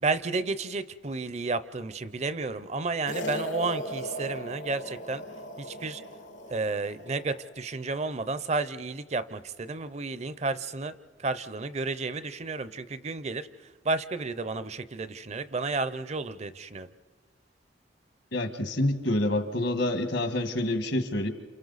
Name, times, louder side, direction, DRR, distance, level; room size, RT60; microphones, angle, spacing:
voice 1, 0.0-5.2 5.6-6.0 6.5-10.9 11.2-13.5 13.8-16.9, right 3 dB, 35° right, 14 dB, 0.5 m, -32 dB
sound 1, 3.1-7.5, equal, 90° left, 1.5 m, -38 dB
voice 2, 18.3-21.3, left 1 dB, 75° left, 8 dB, 1.5 m, -27 dB
28.5 x 28.5 x 4.0 m, 1.5 s
head